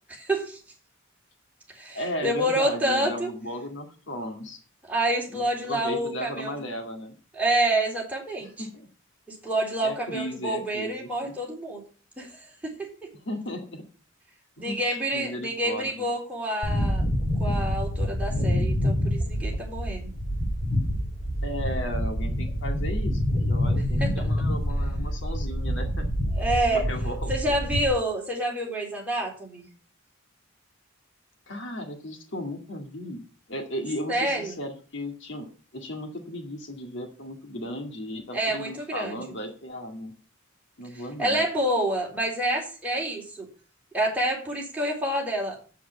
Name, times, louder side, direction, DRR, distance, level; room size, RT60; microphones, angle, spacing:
voice 1, 0.1-0.6 1.7-3.3 4.9-6.5 7.3-8.7 9.3-11.8 12.2-13.1 14.6-17.0 17.4-20.1 24.0-24.1 26.3-26.9 27.3-29.6 34.1-34.6 38.3-39.2 41.2-43.5 43.9-45.6, right 1 dB, 10° right, -2 dB, 3.7 m, -28 dB
voice 2, 1.9-4.6 5.3-7.1 8.4-8.9 9.8-10.9 11.2-11.3 13.3-13.8 14.6-15.9 21.4-23.2 23.5-26.1 26.7-27.3 31.5-33.2 33.5-40.1 40.8-41.4, equal, 60° left, 4 dB, 2.1 m, -35 dB
sound 1, 16.6-27.9, equal, 30° left, 4.1 m, -27 dB
8.2 x 7.9 x 8.2 m, 0.39 s
head